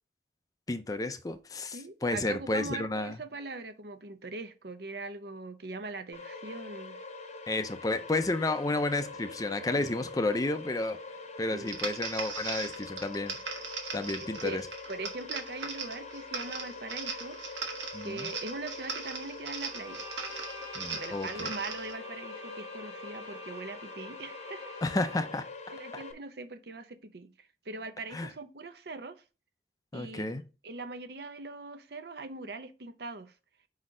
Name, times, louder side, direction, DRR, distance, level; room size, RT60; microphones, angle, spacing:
voice 1, 0.7-3.2 7.5-11.0 11.4-13.6 13.9-14.6 17.9-18.3 20.8-21.5 24.8-25.5 25.9-26.0 28.1-28.3 29.9-30.4, left 2 dB, 20° left, 0.4 m, -31 dB
voice 2, 1.7-7.0 9.7-9.9 11.5-11.8 14.2-14.6 14.9-17.7 18.0-20.0 20.9-24.8 25.7-29.2 29.9-33.3, right 3 dB, 65° right, 0.7 m, -41 dB
sound 1, 6.1-26.1, left 3 dB, 35° left, 0.8 m, -44 dB
sound 2, 11.6-21.9, right 5 dB, 85° right, 1.3 m, -39 dB
Bowed string instrument, 19.7-25.5, left 1 dB, 25° right, 1.3 m, -48 dB
5.1 x 4.2 x 4.8 m
head